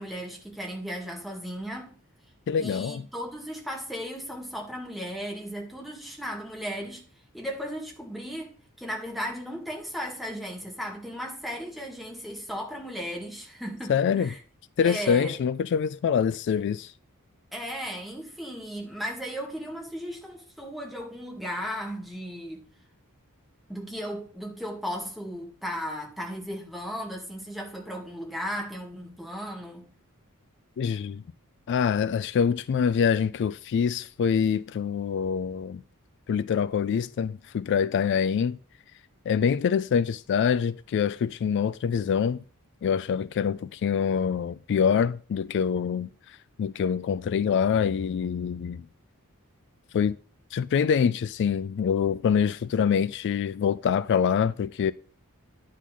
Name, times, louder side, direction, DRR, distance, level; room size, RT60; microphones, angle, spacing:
voice 1, 0.0-2.0 2.6-7.1 7.3-14.4 14.8-15.4 17.5-22.7 23.7-29.9, equal, ahead, 2.0 m, -36 dB
voice 2, 2.5-3.0 13.9-14.3 14.8-16.9 30.8-31.2 31.7-35.8 36.3-38.6 39.3-42.4 42.8-48.8 49.9-50.2 50.5-54.9, left 7 dB, 55° left, 0.3 m, -25 dB
10.0 x 3.7 x 6.2 m
head